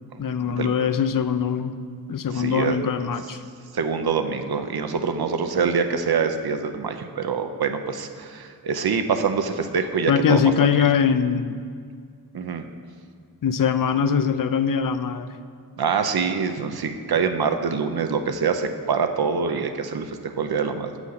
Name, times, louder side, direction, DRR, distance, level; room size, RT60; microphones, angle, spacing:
voice 1, 0.2-1.8 2.1-3.4 10.1-11.6 13.4-15.4, left 7 dB, 60° left, 11 dB, 0.5 m, -22 dB
voice 2, 2.3-2.8 3.7-10.5 12.3-12.6 15.8-20.9, right 5 dB, 70° right, 7 dB, 0.7 m, -25 dB
7.6 x 6.1 x 5.7 m, 2.1 s
cardioid pair, 50°, 38 cm